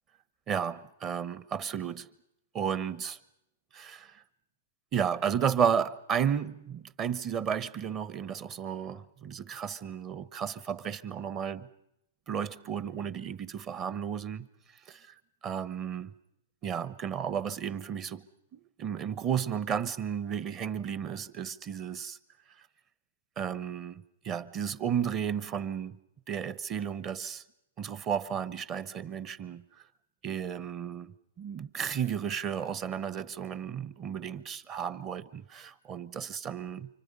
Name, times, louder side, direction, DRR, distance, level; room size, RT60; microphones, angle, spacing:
voice 1, 0.5-2.1 2.5-3.2 3.7-4.2 4.9-11.7 12.3-14.5 14.9-16.1 16.6-18.2 18.5-22.2 22.5-22.7 23.4-26.0 26.3-27.4 27.8-29.6 30.2-36.9, right 8 dB, 30° right, 1.2 m, -33 dB
29.5 x 25.5 x 5.5 m
hypercardioid pair, 115°, 0 cm